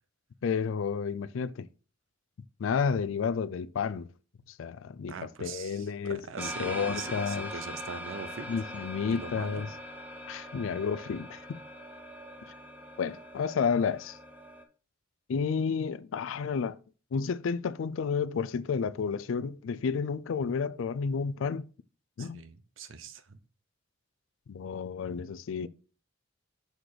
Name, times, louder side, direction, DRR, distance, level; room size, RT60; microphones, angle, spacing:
voice 1, 0.4-1.7 2.6-4.1 4.6-7.5 8.5-9.7 10.3-11.6 13.0-14.2 15.3-16.8 17.1-21.7 22.2-22.4 24.5-25.7, left 6 dB, 75° left, 0.4 m, -31 dB
voice 2, 5.1-8.5 9.1-9.7 22.2-23.4, right 5 dB, 75° right, 0.7 m, -42 dB
sound 1, 6.4-14.6, equal, 10° right, 0.7 m, -42 dB
6.4 x 3.9 x 4.8 m
head